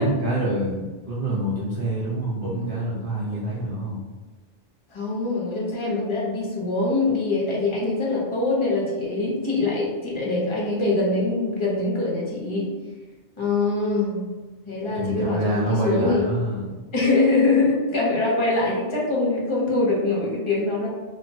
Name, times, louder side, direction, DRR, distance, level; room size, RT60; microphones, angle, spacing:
voice 1, 0.0-4.0 14.9-16.8, right 1 dB, 50° right, -9 dB, 0.9 m, -26 dB
voice 2, 4.9-12.7 13.4-14.4 14.7-16.3 16.9-20.9, left 3 dB, 30° left, -4 dB, 0.7 m, -23 dB
3.0 x 2.1 x 2.7 m, 1.3 s
omnidirectional pair, 1.2 m